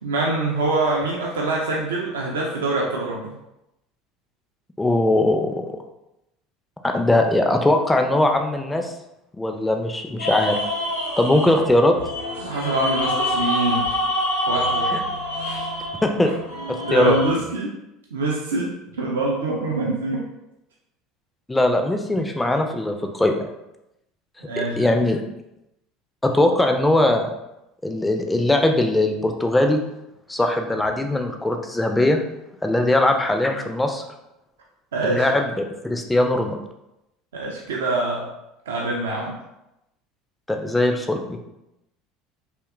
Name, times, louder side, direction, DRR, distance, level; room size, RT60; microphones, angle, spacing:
voice 1, 0.0-3.3 12.4-13.8 14.5-14.8 15.3-15.7 16.8-17.7 18.1-20.2 24.4-25.0 34.9-35.3 37.3-38.2 38.7-39.3, right 2 dB, 75° right, -3 dB, 0.3 m, -24 dB
voice 2, 4.8-5.7 6.8-8.9 9.4-10.6 11.2-11.9 14.9-15.0 16.0-16.3 16.7-17.2 21.5-23.3 24.8-25.2 26.2-27.3 27.8-29.8 30.3-32.2 32.6-34.0 35.0-36.6 40.5-41.4, left 1 dB, 10° left, 4 dB, 0.3 m, -20 dB
sound 1, 10.2-17.3, left 1 dB, 85° left, 0.5 m, -26 dB
2.8 x 2.1 x 2.4 m, 0.89 s
figure-of-eight pair, 70°, 0 cm